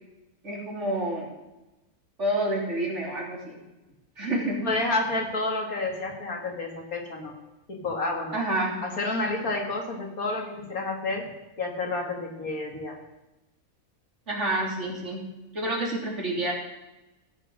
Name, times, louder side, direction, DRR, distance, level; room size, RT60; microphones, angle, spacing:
voice 1, 0.4-1.3 2.2-3.6 4.2-4.6 8.3-8.7 14.3-15.2 15.5-16.5, right 1 dB, 55° right, -2 dB, 3.7 m, -28 dB
voice 2, 4.6-7.3 7.7-8.4 8.8-11.3 11.6-13.0, left 2 dB, 80° left, 2 dB, 2.7 m, -30 dB
16.0 x 7.6 x 6.3 m, 1.0 s
omnidirectional pair, 1.5 m